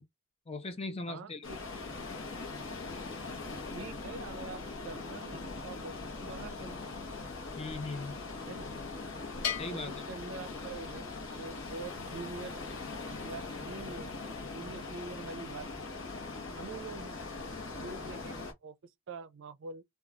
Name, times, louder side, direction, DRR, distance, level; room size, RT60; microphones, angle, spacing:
voice 1, 0.5-1.5 7.6-8.1 9.6-10.0, left 3 dB, 25° left, 0.6 m, -38 dB
voice 2, 1.1-1.6 3.7-6.8 8.5-8.7 9.7-9.8 10.1-11.1 11.4-12.9 13.2-16.0 16.6-17.2 17.7-19.8, right 4 dB, 60° right, 0.5 m, -45 dB
sound 1, 1.4-18.5, left 3 dB, 60° left, 0.9 m, -41 dB
Bell, 9.4-11.2, left 8 dB, 85° left, 0.8 m, -39 dB
2.9 x 2.3 x 2.4 m
head